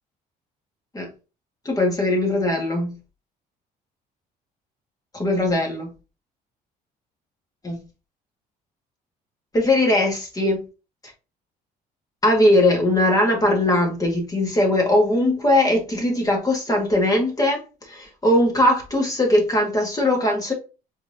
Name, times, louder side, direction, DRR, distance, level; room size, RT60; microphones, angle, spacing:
voice 1, 1.6-2.9 5.1-5.9 7.6-7.8 9.5-10.6 12.2-20.5, left 1 dB, 20° left, 1.7 m, -20 dB
4.5 x 3.8 x 2.7 m
cardioid pair, 110°, 17 cm